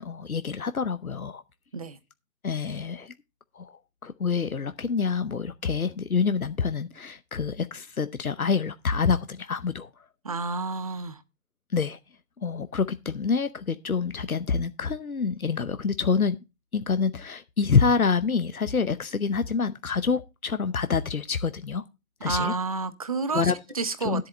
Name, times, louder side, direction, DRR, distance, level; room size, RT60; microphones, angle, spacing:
voice 1, 0.0-1.4 2.4-3.1 3.5-9.9 11.7-12.0 12.4-16.4 16.7-21.8 22.2-22.5 23.3-23.6 24.0-24.3, left 5 dB, 85° left, 0.9 m, -27 dB
voice 2, 10.2-11.2 22.2-24.3, right 4 dB, 25° right, 0.6 m, -30 dB
10.5 x 7.7 x 4.0 m
figure-of-eight pair, 140°, 42 cm